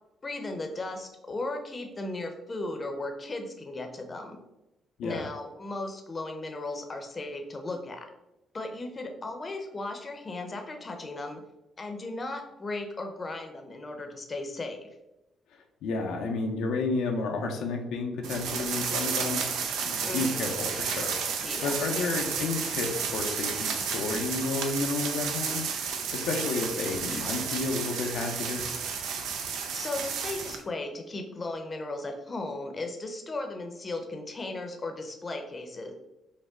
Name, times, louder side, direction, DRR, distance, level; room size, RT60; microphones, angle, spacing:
voice 1, 0.2-4.4 5.0-8.1 8.5-11.4 11.8-14.9 20.1-20.5 21.4-21.8 29.7-35.9, left 2 dB, 30° left, 4 dB, 0.6 m, -36 dB
voice 2, 15.5-19.4 19.9-25.6 26.1-28.8, left 3 dB, 85° left, 2 dB, 0.6 m, -31 dB
sound 1, 18.2-30.6, right 6 dB, 85° right, 0.5 m, -32 dB
5.3 x 2.1 x 3.6 m, 0.93 s
cardioid pair, 90°, 0 cm